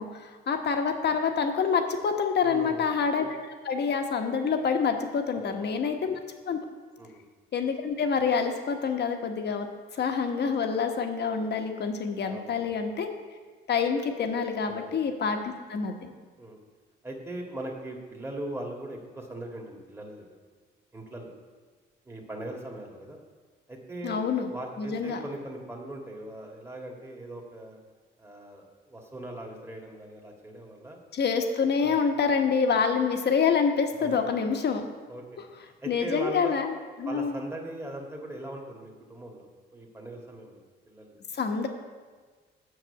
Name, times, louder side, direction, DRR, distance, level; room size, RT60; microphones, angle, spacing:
voice 1, 0.0-3.4 3.6-6.2 6.5-6.6 7.5-9.7 9.9-13.1 13.7-16.1 24.0-24.5 24.8-25.2 31.1-34.8 35.9-36.7 37.0-37.4 41.3-41.7, left 6 dB, 55° left, 5 dB, 1.2 m, -27 dB
voice 2, 2.4-2.9 5.3-5.4 5.8-6.1 7.0-7.2 12.3-12.7 14.7-14.9 16.4-16.6 17.0-20.3 20.9-21.3 22.1-23.2 23.7-27.8 28.2-31.0 31.8-32.0 34.0-34.2 35.1-35.2 35.6-36.5 37.1-39.5 39.7-41.2, right 1 dB, 10° right, 0 dB, 1.9 m, -40 dB
8.0 x 5.9 x 8.0 m, 1.4 s
cardioid pair, 90°, 20 cm